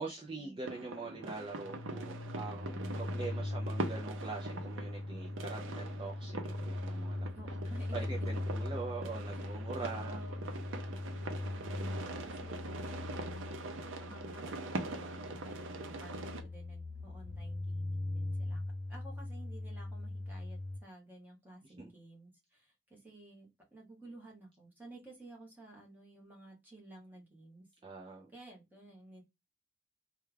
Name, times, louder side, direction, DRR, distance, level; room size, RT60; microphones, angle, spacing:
voice 1, 0.0-7.3 7.9-10.2 21.8-21.9 27.8-28.3, right 3 dB, 25° right, 0.5 m, -43 dB
sound 1, 0.6-16.4, right 2 dB, 80° right, 0.5 m, -43 dB
sound 2, 1.6-20.8, left 2 dB, 35° left, 0.4 m, -40 dB
voice 2, 2.2-3.6 7.3-8.3 9.3-10.6 11.1-13.7 14.0-18.6 18.9-27.7 28.3-29.2, right 2 dB, 10° right, 1.1 m, -54 dB
3.3 x 2.3 x 3.2 m
head